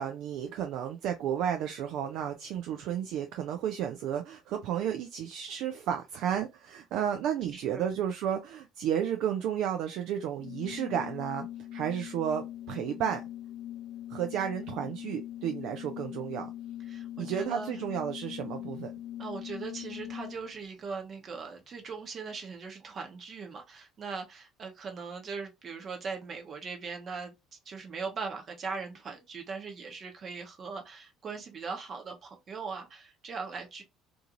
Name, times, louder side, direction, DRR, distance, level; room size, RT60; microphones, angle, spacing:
voice 1, 0.0-11.5 11.7-13.2 14.1-16.5 17.2-18.9, right 9 dB, 65° right, 0.4 m, -32 dB
voice 2, 7.5-7.9 14.7-15.0 16.8-17.7 19.2-33.8, right 5 dB, 45° right, 0.9 m, -40 dB
Organ, 10.4-20.6, left 12 dB, 50° left, 0.5 m, -41 dB
2.5 x 2.4 x 2.9 m
hypercardioid pair, 60°, 0 cm